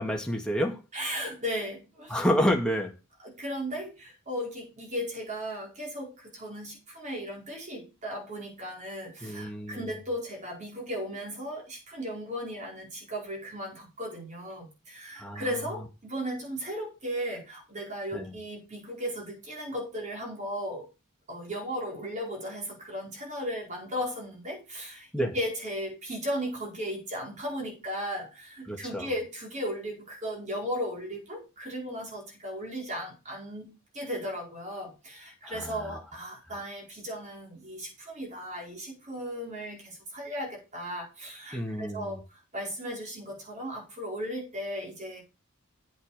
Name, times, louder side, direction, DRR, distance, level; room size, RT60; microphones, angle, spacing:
voice 1, 0.0-0.8 2.1-2.9 9.2-10.0 15.2-15.4 18.1-18.3 25.1-25.4 28.7-29.1 35.4-36.0 41.5-42.2, equal, 5° left, 1.7 m, -29 dB
voice 2, 0.9-2.2 3.2-20.9 21.3-45.2, equal, 35° right, 4.7 m, -36 dB
8.1 x 7.7 x 5.0 m
head